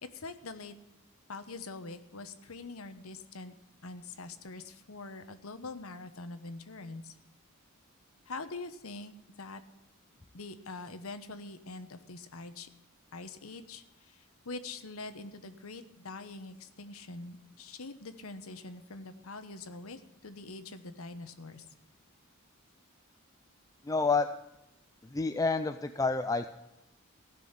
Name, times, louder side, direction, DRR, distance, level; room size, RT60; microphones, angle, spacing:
voice 1, 0.0-0.8 1.3-3.5 3.8-7.1 8.3-9.6 10.3-12.7 13.1-21.6, left 3 dB, 85° left, 10 dB, 1.1 m, -44 dB
voice 2, 23.8-24.3 25.0-26.5, left 4 dB, 15° left, 9 dB, 0.4 m, -29 dB
16.0 x 6.3 x 8.6 m, 0.95 s
head